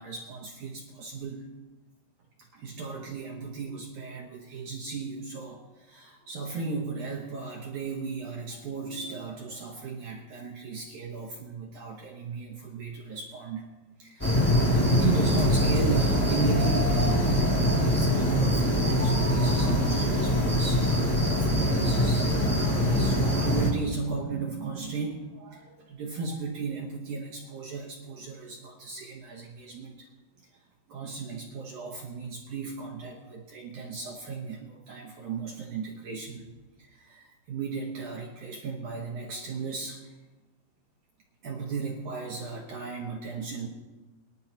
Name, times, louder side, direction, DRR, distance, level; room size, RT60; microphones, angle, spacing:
voice 1, 0.0-1.5 2.5-13.6 14.0-22.3 22.5-30.1 30.9-36.5 36.8-40.0 41.4-43.7, right 4 dB, 65° right, -1 dB, 2.0 m, -35 dB
sound 1, 14.2-23.7, equal, 10° left, 1.0 m, -23 dB
23.5 x 11.5 x 2.9 m, 1.2 s
omnidirectional pair, 5.0 m